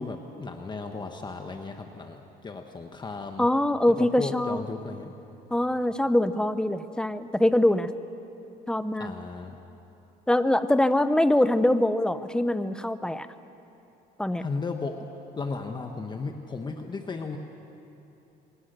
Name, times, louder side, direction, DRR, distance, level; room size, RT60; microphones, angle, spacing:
voice 1, 0.0-3.5 3.9-5.1 9.0-9.6 14.4-15.0 15.4-17.4, left 4 dB, 25° left, 5 dB, 1.2 m, -35 dB
voice 2, 3.4-4.6 5.5-7.9 8.7-9.1 10.3-13.3 14.2-14.4, left 1 dB, 5° left, 12 dB, 0.8 m, -23 dB
24.0 x 20.0 x 6.8 m, 2.9 s
cardioid pair, 110°, 17 cm